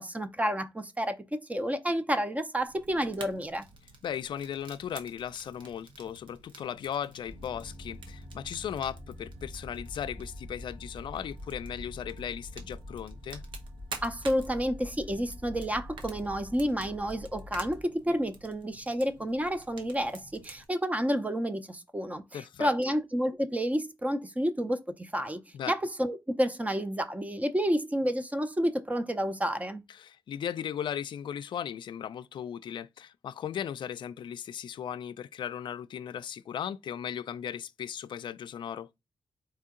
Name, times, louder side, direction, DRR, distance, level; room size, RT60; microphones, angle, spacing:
voice 1, 0.0-3.7 14.0-25.4 25.7-29.8, equal, 15° right, 0.6 m, -30 dB
Fire, 2.7-20.6, right 4 dB, 80° right, 1.0 m, -50 dB
voice 2, 4.0-13.4 22.3-22.9 25.5-25.7 29.9-38.9, left 9 dB, 70° left, 0.4 m, -37 dB
sound 1, 7.2-17.8, left 1 dB, 60° right, 2.8 m, -45 dB
4.4 x 2.7 x 3.7 m
cardioid pair, 75°, 8 cm